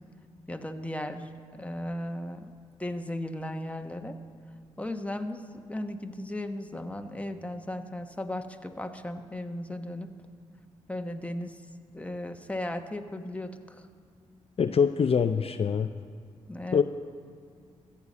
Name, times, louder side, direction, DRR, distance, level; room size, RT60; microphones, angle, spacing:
voice 1, 0.5-2.5 2.8-4.2 4.8-5.4 5.7-10.1 10.9-11.6 11.9-13.9 16.5-16.8, left 1 dB, 10° left, 6 dB, 1.1 m, -36 dB
voice 2, 14.6-15.9 16.7-16.8, left 6 dB, 45° left, 8 dB, 0.5 m, -24 dB
14.0 x 7.0 x 8.3 m, 2.2 s
supercardioid pair, 45°, 14 cm